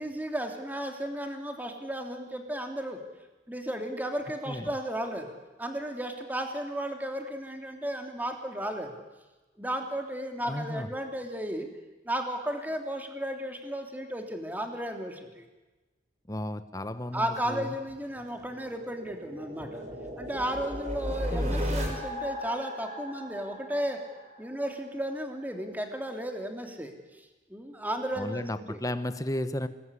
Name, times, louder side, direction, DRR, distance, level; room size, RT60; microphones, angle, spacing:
voice 1, 0.0-3.0 3.5-9.0 9.6-11.7 12.0-15.4 17.1-19.8 20.2-24.0 24.4-26.9 27.5-28.8, right 1 dB, 10° right, 4 dB, 3.0 m, -34 dB
voice 2, 10.5-10.9 16.3-17.8 21.3-21.7 28.1-29.7, left 1 dB, 20° left, 12 dB, 1.2 m, -34 dB
sound 1, 17.9-24.7, equal, 40° right, 6.5 m, -35 dB
27.5 x 20.5 x 10.0 m, 1.1 s
head